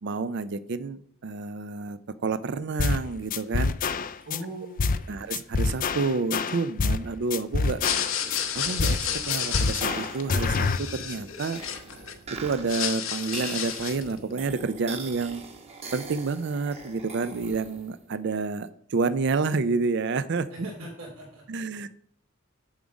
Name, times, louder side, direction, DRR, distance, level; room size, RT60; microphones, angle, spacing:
voice 1, 0.0-3.7 5.1-7.8 8.5-11.6 12.3-15.4 15.9-20.5 21.5-21.9, right 4 dB, 55° right, 15 dB, 0.4 m, -29 dB
sound 1, 2.8-3.0 3.3-4.4 4.8-5.0 5.3-7.0 7.3-8.4 8.8-9.0 9.3-10.8, left 4 dB, 40° left, 0.4 m, -26 dB
voice 2, 4.2-5.2 20.5-21.4, right 1 dB, 85° right, -3 dB, 3.1 m, -40 dB
sound 2, 7.7-12.1 12.5-14.1, left 9 dB, 75° left, 1.1 m, -31 dB
sound 3, 8.1-18.0, right 4 dB, 30° right, 1.1 m, -42 dB
7.3 x 7.3 x 5.2 m, 0.66 s
head